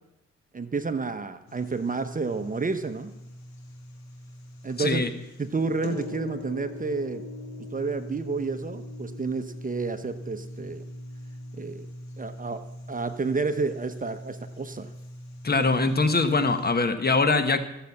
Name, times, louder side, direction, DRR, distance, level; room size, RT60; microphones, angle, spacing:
voice 1, 0.5-3.1 4.6-5.0 5.4-7.2 7.7-10.8 11.6-11.9 12.2-14.9, right 4 dB, 25° right, 10 dB, 1.0 m, -30 dB
sound 1, 1.5-16.7, left 1 dB, 70° left, 2.6 m, -41 dB
voice 2, 4.8-5.1 15.4-17.6, left 3 dB, 30° left, 10 dB, 1.3 m, -23 dB
14.5 x 7.9 x 7.1 m, 0.92 s
supercardioid pair, 65°, 30 cm